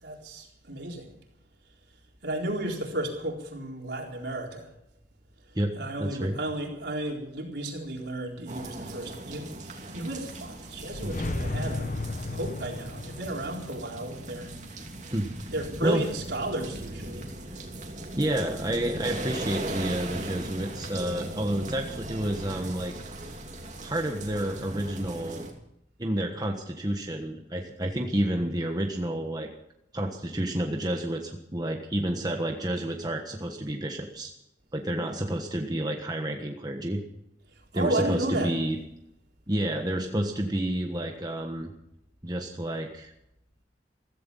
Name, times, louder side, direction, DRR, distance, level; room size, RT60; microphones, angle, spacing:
voice 1, 0.0-1.1 2.2-4.7 5.7-11.9 12.3-14.5 15.5-17.3 37.7-38.5, right 1 dB, 70° right, 0 dB, 4.2 m, -33 dB
voice 2, 6.0-6.4 11.0-11.1 15.1-15.3 15.8-16.0 18.2-22.9 23.8-25.4 26.0-29.5 29.9-34.3 34.7-37.0 37.7-38.8 39.5-41.7 42.2-43.1, right 1 dB, 20° right, 2 dB, 1.4 m, -30 dB
sound 1, 8.5-25.5, right 1 dB, 40° right, 2.8 m, -39 dB
sound 2, 10.4-15.5, left 2 dB, 45° left, 1.0 m, -35 dB
16.0 x 15.5 x 5.6 m, 0.80 s
head